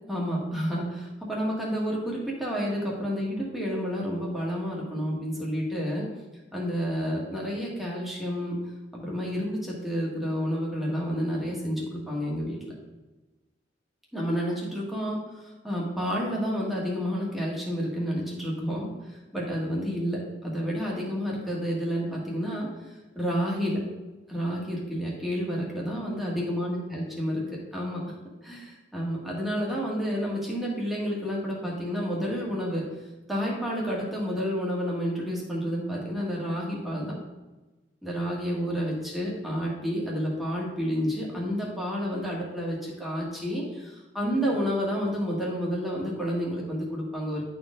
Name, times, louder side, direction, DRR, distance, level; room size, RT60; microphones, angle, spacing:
voice 1, 0.1-6.1 6.5-8.6 9.0-12.6 14.1-18.9 19.3-22.7 23.2-23.8 24.3-28.0 28.4-32.8 33.3-37.2 38.0-47.4, equal, ahead, -4 dB, 1.9 m, -30 dB
11.0 x 4.5 x 3.8 m, 1.1 s
head